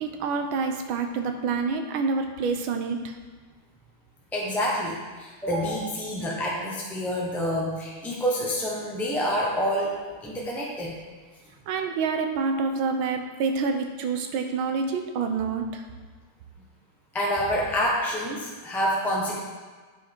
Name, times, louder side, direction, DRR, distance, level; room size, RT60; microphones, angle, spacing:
voice 1, 0.0-3.1 11.7-15.8, right 4 dB, 75° right, 5 dB, 1.5 m, -27 dB
voice 2, 4.3-9.9 10.2-10.9 17.1-19.4, equal, ahead, -4 dB, 0.4 m, -27 dB
8.9 x 5.5 x 4.4 m, 1.4 s
omnidirectional pair, 2.4 m